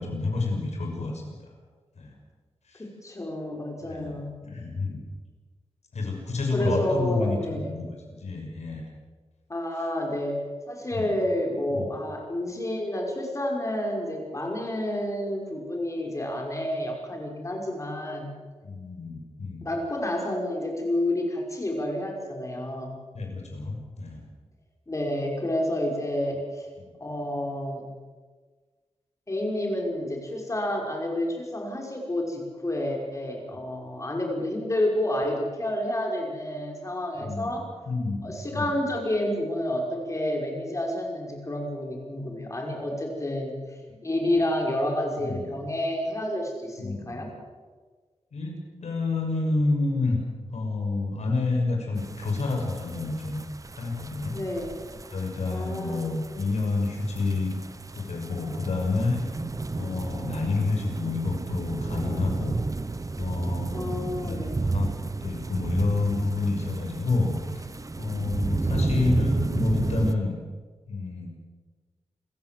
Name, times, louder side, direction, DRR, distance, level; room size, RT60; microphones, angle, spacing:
voice 1, 0.0-1.4 2.0-2.1 2.7-2.8 3.8-4.2 4.4-5.0 5.9-8.8 10.9-11.1 11.7-11.9 18.6-19.7 23.1-24.2 26.8-26.9 33.5-33.6 37.1-37.5 37.9-38.7 45.2-45.5 46.8-47.2 48.3-50.2 50.5-53.4 53.8-54.4 55.1-57.5 57.9-59.2 59.7-62.6 63.2-63.9 64.2-64.9 65.2-67.6 68.0-70.3 70.9-71.3, left 3 dB, 85° left, 1 dB, 6.3 m, -29 dB
voice 2, 2.7-4.3 6.5-7.8 9.5-10.4 10.7-18.3 19.6-23.0 24.9-26.7 27.0-27.9 29.3-37.6 38.2-47.3 54.3-54.8 55.5-56.1 63.7-64.6, left 1 dB, 30° left, 1 dB, 5.6 m, -29 dB
sound 1, 52.0-70.1, right 3 dB, 30° right, 0.9 m, -32 dB
27.0 x 15.5 x 7.9 m, 1.4 s
wide cardioid pair, 120°, 11 cm